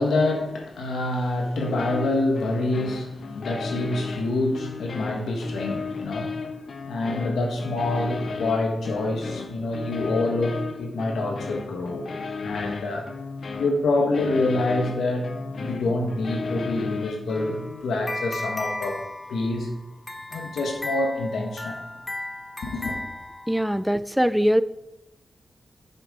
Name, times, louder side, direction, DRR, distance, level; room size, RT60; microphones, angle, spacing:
voice 1, 0.0-12.0 12.4-13.1 13.6-15.3 15.6-19.0 19.3-19.7 20.3-21.8 22.6-22.9, left 2 dB, 90° left, 1.4 m, -26 dB
sound 1, 1.6-17.8, left 4 dB, 70° left, 0.6 m, -35 dB
sound 2, 17.3-23.8, left 2 dB, 30° left, 1.1 m, -35 dB
voice 2, 23.5-24.6, equal, 5° right, 0.4 m, -21 dB
8.7 x 6.9 x 3.7 m
cardioid pair, 55°, 0 cm